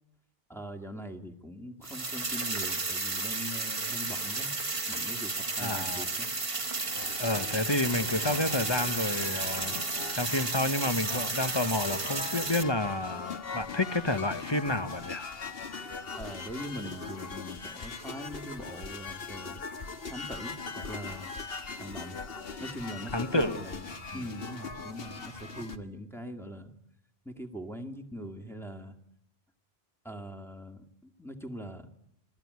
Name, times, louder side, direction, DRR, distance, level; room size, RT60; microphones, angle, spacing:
voice 1, 0.5-4.5 4.9-6.3 16.2-19.6 20.1-21.3 21.8-22.2 22.6-26.7 27.3-29.0 30.0-31.9, equal, ahead, 3 dB, 2.0 m, -42 dB
sound 1, 1.8-12.6, right 3 dB, 30° right, 1.4 m, -33 dB
voice 2, 5.6-6.0 7.2-9.7 10.1-15.2 23.1-23.6 24.1-24.2, left 2 dB, 25° left, 10 dB, 1.1 m, -30 dB
sound 2, 6.4-25.8, left 5 dB, 70° left, 1.6 m, -41 dB
27.5 x 21.5 x 9.5 m, 0.79 s
omnidirectional pair, 1.0 m